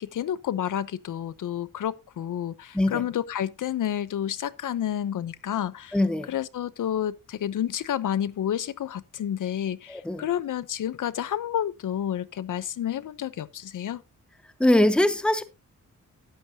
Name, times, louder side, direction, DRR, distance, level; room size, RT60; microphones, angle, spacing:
voice 1, 0.0-6.0 6.3-14.0, left 10 dB, 70° left, 0.7 m, -30 dB
voice 2, 5.9-6.3 9.9-10.2 14.6-15.4, left 1 dB, 5° left, 0.8 m, -22 dB
13.5 x 9.3 x 2.8 m
wide cardioid pair, 150°, 32 cm